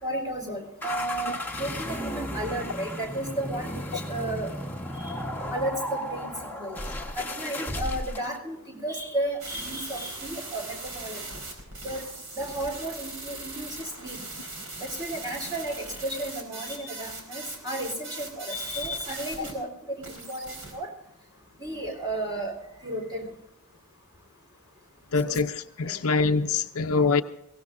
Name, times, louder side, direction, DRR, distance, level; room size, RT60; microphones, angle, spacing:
voice 1, 0.0-4.5 5.5-6.3 6.6-6.8 7.2-11.2 11.8-12.0 12.3-14.2 14.8-20.9 21.6-22.5 22.8-23.3 25.2-25.4 25.9-26.0, right 1 dB, 20° right, 3.6 m, -33 dB
sound 1, 0.8-8.4, equal, 10° left, 1.2 m, -34 dB
sound 2, 9.4-19.5 20.0-20.8, right 2 dB, 70° right, 4.4 m, -40 dB
voice 2, 25.1-27.2, left 4 dB, 65° left, 0.6 m, -24 dB
23.0 x 17.0 x 2.6 m
head